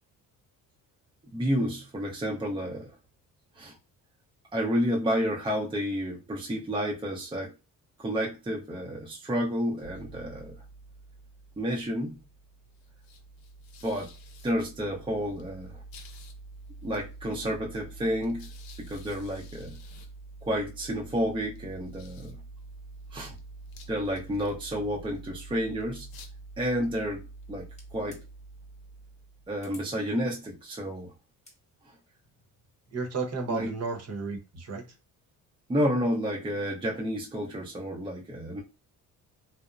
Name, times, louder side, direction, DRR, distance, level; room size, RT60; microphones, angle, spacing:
voice 1, 1.3-2.9 3.6-3.8 4.5-7.5 8.0-10.5 11.6-12.2 13.8-14.1 14.4-15.8 16.8-18.5 18.8-19.8 20.4-22.4 23.1-23.3 23.9-26.1 26.6-28.2 29.5-31.1 33.5-33.7 35.7-38.6, equal, 15° right, 0.6 m, -30 dB
sound 1, 9.8-29.7, right 2 dB, 90° left, 0.6 m, -47 dB
sound 2, 27.7-28.2 29.6-29.9 31.3-31.6, left 2 dB, 20° left, 0.8 m, -53 dB
voice 2, 32.9-34.9, right 4 dB, 45° right, 0.8 m, -33 dB
2.8 x 2.0 x 2.4 m
cardioid pair, 105°, 35 cm